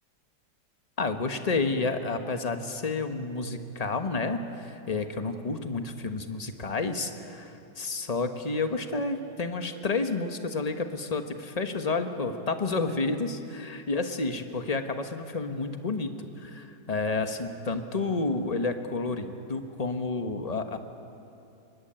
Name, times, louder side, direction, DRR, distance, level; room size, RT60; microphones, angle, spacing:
voice 1, 1.0-16.1 16.4-20.8, left 3 dB, 25° left, 7 dB, 1.2 m, -30 dB
24.0 x 21.5 x 8.9 m, 2.9 s
omnidirectional pair, 1.8 m